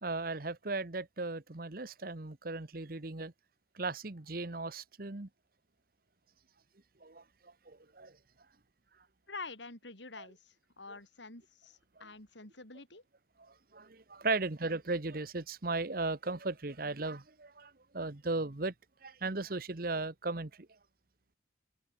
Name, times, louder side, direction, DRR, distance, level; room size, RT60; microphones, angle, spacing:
voice 1, 0.0-3.3 3.7-5.3 7.0-8.1 10.2-10.3 13.5-18.7 19.0-20.7, right 3 dB, 50° right, 1.2 m, -37 dB
voice 2, 9.3-13.0, left 3 dB, 75° left, 7.7 m, -47 dB
head